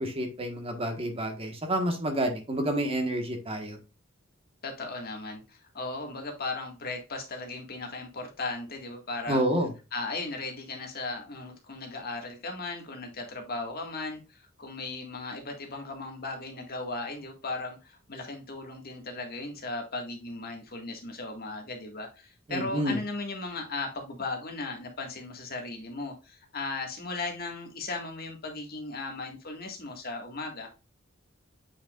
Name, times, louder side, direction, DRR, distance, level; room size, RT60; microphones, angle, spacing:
voice 1, 0.0-3.8 9.3-9.7 22.5-23.0, right 1 dB, 30° right, 4 dB, 1.4 m, -29 dB
voice 2, 4.6-9.4 9.9-30.7, left 3 dB, 50° left, 2 dB, 1.8 m, -37 dB
8.3 x 5.1 x 2.4 m, 0.29 s
head